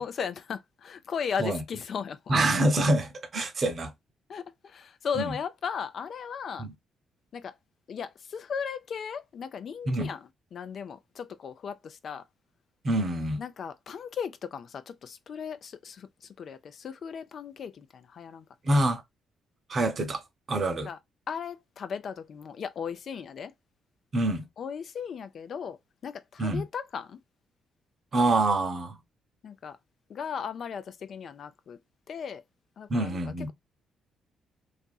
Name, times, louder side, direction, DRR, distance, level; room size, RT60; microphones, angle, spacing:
voice 1, 0.0-2.3 4.3-6.7 7.3-7.5 7.9-12.2 13.4-18.5 20.9-21.0 21.3-23.5 24.6-25.8 26.0-27.2 29.4-29.8 30.1-31.8 32.1-32.4 32.8-33.2, left 7 dB, 55° left, 0.4 m, -36 dB
voice 2, 2.3-3.9 5.2-5.4 6.6-6.7 9.9-10.1 12.8-13.4 18.6-19.0 19.7-20.2 20.5-20.9 24.1-24.5 26.4-26.7 28.1-29.0 32.9-33.5, right 2 dB, 45° right, 0.7 m, -26 dB
2.6 x 2.5 x 2.2 m
cardioid pair, 90°, 0 cm